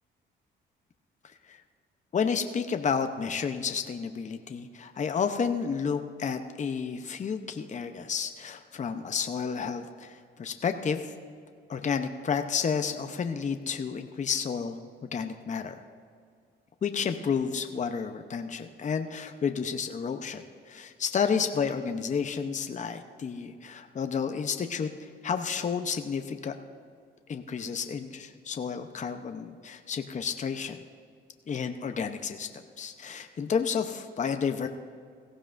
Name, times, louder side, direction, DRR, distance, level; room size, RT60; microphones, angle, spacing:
voice 1, 1.2-1.6 2.1-11.1 11.7-14.8 15.1-15.8 16.8-26.5 27.3-30.8 31.5-32.5 32.8-34.7, left 6 dB, 40° left, 7 dB, 0.8 m, -31 dB
17.5 x 15.0 x 2.6 m, 2.2 s
cardioid pair, 90°, 20 cm